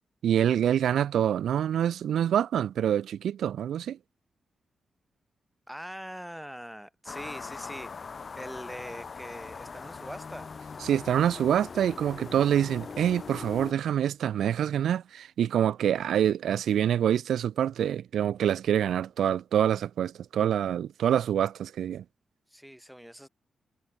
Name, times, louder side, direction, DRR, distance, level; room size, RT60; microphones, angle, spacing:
voice 1, 0.2-4.0 10.8-22.0, right 10 dB, 85° right, 0.9 m, -26 dB
voice 2, 5.7-7.9 8.3-10.5 22.5-23.3, equal, 5° right, 6.9 m, -42 dB
sound 1, 7.1-13.7, left 5 dB, 45° left, 4.2 m, -41 dB
cardioid pair, 80°, 0 cm